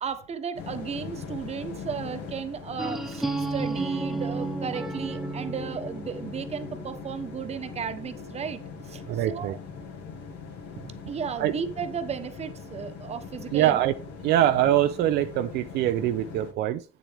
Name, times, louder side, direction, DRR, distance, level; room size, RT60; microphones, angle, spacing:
voice 1, 0.0-9.6 11.1-13.8, right 7 dB, 40° right, 1.0 m, -34 dB
sound 1, 0.5-16.5, left 5 dB, 85° left, 2.1 m, -41 dB
sound 2, 2.8-8.6, right 2 dB, ahead, 0.9 m, -33 dB
voice 2, 9.1-9.5 11.4-11.5 13.5-13.9 14.2-16.8, right 12 dB, 80° right, 0.5 m, -23 dB
8.6 x 7.3 x 3.5 m
cardioid pair, 110°, 17 cm